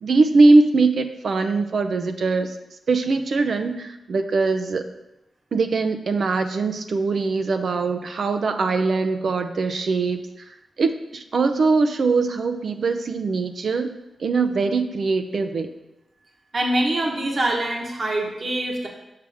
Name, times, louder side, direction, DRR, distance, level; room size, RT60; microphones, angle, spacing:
voice 1, 0.0-2.5 2.9-4.8 5.5-10.2 10.8-13.9 14.2-15.7, right 3 dB, 65° right, 7 dB, 0.6 m, -21 dB
voice 2, 16.5-18.9, right 1 dB, 45° right, 0 dB, 1.2 m, -24 dB
6.7 x 6.2 x 3.5 m, 0.92 s
wide cardioid pair, 95°, 0 cm